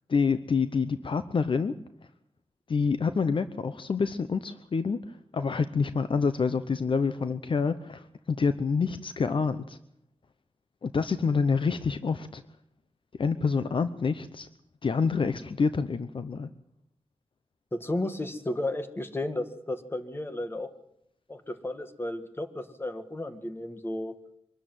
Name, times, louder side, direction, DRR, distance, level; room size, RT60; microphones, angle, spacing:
voice 1, 0.1-1.7 2.7-5.0 5.3-9.8 10.8-12.4 13.2-14.5 14.8-16.5, left 5 dB, 60° left, 12 dB, 0.8 m, -27 dB
voice 2, 17.7-20.7 21.3-24.2, left 1 dB, 25° left, 9 dB, 2.0 m, -33 dB
24.5 x 13.0 x 9.3 m, 0.77 s
wide cardioid pair, 110°, 10 cm